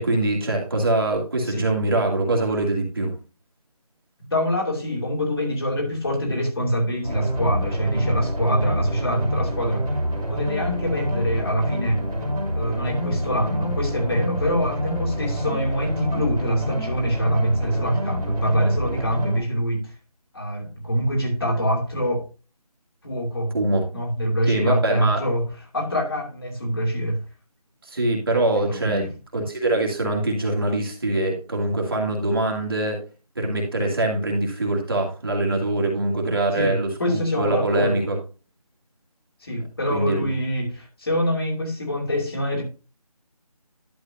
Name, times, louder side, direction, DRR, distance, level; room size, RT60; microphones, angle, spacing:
voice 1, 0.0-3.1 23.5-23.8 24.4-25.2 27.8-33.0 33.4-38.2 39.9-40.3, right 2 dB, 35° right, 2.2 m, -23 dB
voice 2, 4.2-9.9 10.3-12.1 12.5-19.9 20.3-22.3 23.0-23.6 23.9-27.2 28.5-29.1 36.5-38.0 39.4-42.6, equal, 40° left, 2.7 m, -25 dB
sound 1, 7.0-19.4, equal, 5° right, 1.0 m, -27 dB
11.5 x 6.8 x 2.7 m
figure-of-eight pair, 175°, 20 cm